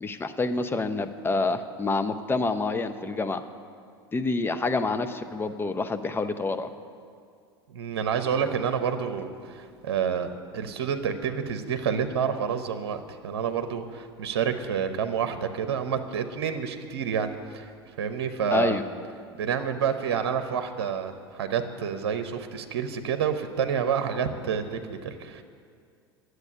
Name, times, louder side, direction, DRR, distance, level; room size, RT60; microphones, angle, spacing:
voice 1, 0.0-3.4 4.1-6.7 18.5-18.8, left 3 dB, 15° left, 9 dB, 0.8 m, -27 dB
voice 2, 7.7-17.7 18.0-18.8 19.4-25.4, right 7 dB, 70° right, 8 dB, 0.9 m, -29 dB
10.5 x 7.9 x 9.4 m, 2.2 s
hypercardioid pair, 80°, 13 cm